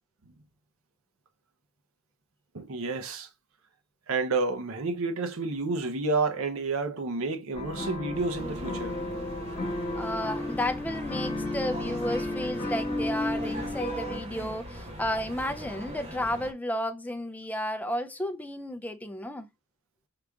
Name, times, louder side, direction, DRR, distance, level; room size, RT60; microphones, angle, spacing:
voice 1, 2.5-3.3 4.1-9.0, right 3 dB, 75° right, 0.8 m, -30 dB
sound 1, 7.5-14.2, left 1 dB, 25° left, 1.4 m, -33 dB
sound 2, 8.1-16.5, right 1 dB, 30° right, 1.1 m, -41 dB
voice 2, 10.0-19.5, left 1 dB, 5° left, 0.4 m, -32 dB
4.8 x 2.5 x 3.4 m
head